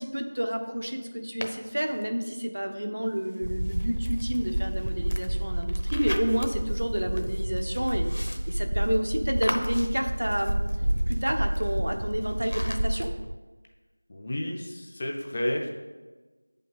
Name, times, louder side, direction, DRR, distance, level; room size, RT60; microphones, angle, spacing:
voice 1, 0.0-8.1 8.5-10.6 11.1-13.1, equal, 85° right, 4 dB, 1.1 m, -30 dB
sound 1, 1.4-2.0 3.1-13.1, left 1 dB, 60° left, 0.8 m, -41 dB
sound 2, 3.4-13.4, right 1 dB, 60° right, 0.4 m, -29 dB
voice 2, 14.1-15.7, left 1 dB, 15° left, 1 dB, 0.4 m, -31 dB
7.5 x 5.5 x 5.2 m, 1.3 s
figure-of-eight pair, 180°, 0 cm